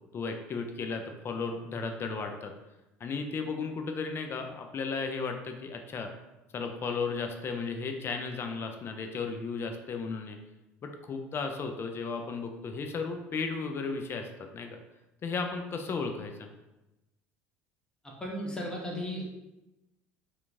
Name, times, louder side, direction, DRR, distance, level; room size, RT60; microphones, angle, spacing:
voice 1, 0.1-2.5 3.0-6.1 6.5-10.4 10.8-14.8 15.2-16.5, left 4 dB, 35° left, 5 dB, 0.4 m, -35 dB
voice 2, 18.0-19.2, equal, 10° left, -2 dB, 0.8 m, -35 dB
2.9 x 2.2 x 2.5 m, 0.98 s
hypercardioid pair, 70°, 7 cm